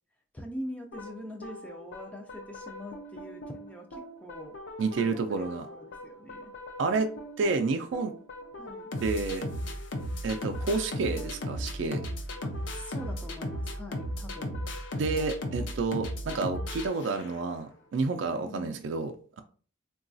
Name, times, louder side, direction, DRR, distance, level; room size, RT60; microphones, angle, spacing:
voice 1, 0.3-4.5 4.9-6.5 8.6-8.9 12.4-14.6 18.5-18.8, left 1 dB, 5° left, 0.3 m, -43 dB
sound 1, 0.9-17.6, equal, 75° left, 0.6 m, -37 dB
voice 2, 4.8-5.7 6.8-7.1 7.4-8.2 9.0-9.4 10.2-12.0 15.0-19.4, right 3 dB, 75° right, 0.4 m, -30 dB
3.8 x 2.3 x 2.5 m
head